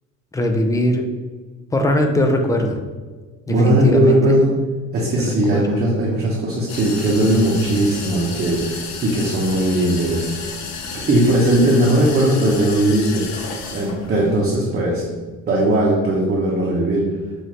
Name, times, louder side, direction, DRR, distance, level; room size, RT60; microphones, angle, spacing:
voice 1, 0.3-1.1 1.7-2.8 3.5-4.4 5.3-5.8, left 1 dB, 10° left, 4 dB, 0.4 m, -20 dB
voice 2, 3.5-4.5 4.9-10.3 11.1-15.0 15.5-17.0, right 1 dB, 30° right, -5 dB, 0.9 m, -18 dB
sound 1, 6.7-14.3, left 4 dB, 60° left, 0.7 m, -32 dB
5.7 x 2.7 x 3.2 m, 1.4 s
cardioid pair, 120°, 31 cm